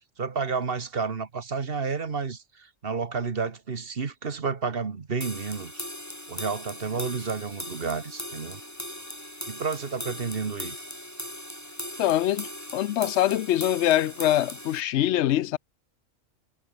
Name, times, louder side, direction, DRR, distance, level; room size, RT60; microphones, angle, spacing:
voice 1, 0.2-5.9 6.3-8.6 9.5-10.7, right 5 dB, 45° right, 1.6 m, -31 dB
sound 1, 5.2-14.8, equal, 10° left, 6.8 m, -39 dB
voice 2, 12.0-15.6, left 13 dB, 65° left, 0.8 m, -24 dB
omnidirectional pair, 1.3 m